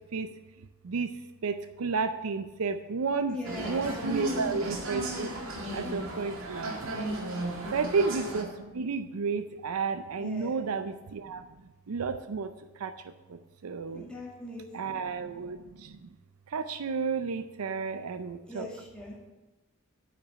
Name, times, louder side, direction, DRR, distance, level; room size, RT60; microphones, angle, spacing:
voice 1, 1.4-7.2 7.7-11.5 11.9-14.1 14.7-16.1 16.5-18.7, right 4 dB, 90° right, 10 dB, 0.5 m, -32 dB
voice 2, 3.3-4.5 5.8-6.1 7.6-7.8 10.2-10.6 13.9-15.0 18.4-19.2, left 1 dB, 5° left, -4 dB, 2.0 m, -40 dB
sound 1, 3.4-8.4, right 1 dB, 70° right, 2.1 m, -35 dB
8.8 x 5.9 x 7.0 m, 1.1 s
head